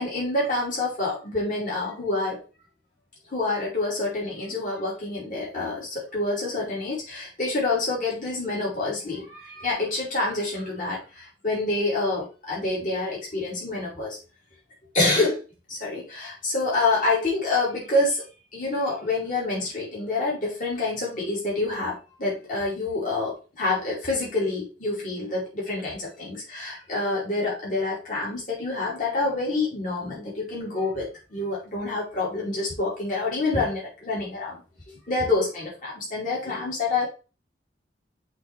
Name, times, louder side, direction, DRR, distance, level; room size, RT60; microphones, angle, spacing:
voice 1, 0.0-2.4 3.3-14.2 14.9-15.4 15.7-18.2 18.5-34.6 35.1-37.1, left 2 dB, 50° left, -5 dB, 2.7 m, -27 dB
6.1 x 3.4 x 4.6 m, 0.33 s
head